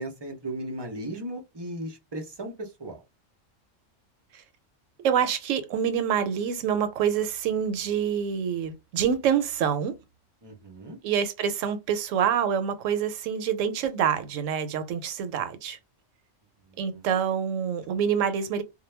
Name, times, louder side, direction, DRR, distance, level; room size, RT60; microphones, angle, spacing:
voice 1, 0.0-3.0 10.4-11.0 16.7-17.1, right 1 dB, 35° right, 0.4 m, -36 dB
voice 2, 5.0-10.0 11.0-15.8 16.8-18.6, right 8 dB, 80° right, 0.9 m, -26 dB
2.2 x 2.1 x 3.1 m
omnidirectional pair, 1.3 m